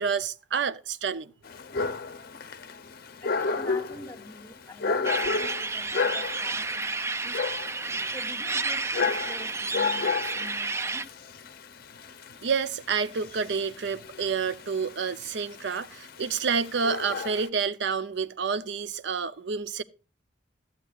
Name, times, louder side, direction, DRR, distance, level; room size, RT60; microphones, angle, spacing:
voice 1, 0.0-1.3 12.4-19.8, right 5 dB, 65° right, 0.5 m, -29 dB
Dog, 1.4-17.5, left 4 dB, 50° left, 0.6 m, -32 dB
voice 2, 3.2-7.7 8.1-11.1 17.2-17.3, left 2 dB, 10° left, 1.4 m, -45 dB
sound 1, 5.0-11.0, right 3 dB, 15° right, 0.4 m, -31 dB
14.5 x 8.1 x 2.4 m
head